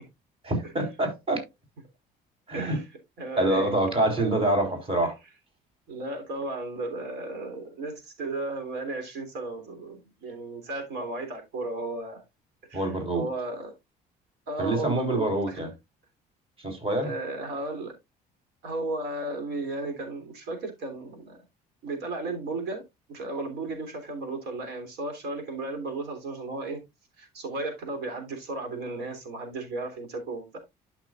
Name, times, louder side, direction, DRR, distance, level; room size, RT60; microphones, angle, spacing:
voice 1, 0.4-1.4 2.5-2.8 3.4-5.1 12.7-13.2 14.6-15.7 16.6-17.1, right 1 dB, 35° right, 4.1 m, -26 dB
voice 2, 2.5-2.9 3.2-3.7 5.9-12.2 12.7-13.7 14.5-15.6 17.0-17.9 18.6-21.4 21.8-22.8 23.1-26.8 27.2-30.6, right 2 dB, 80° right, 3.3 m, -34 dB
12.0 x 6.0 x 2.4 m
cardioid pair, 110°, 17 cm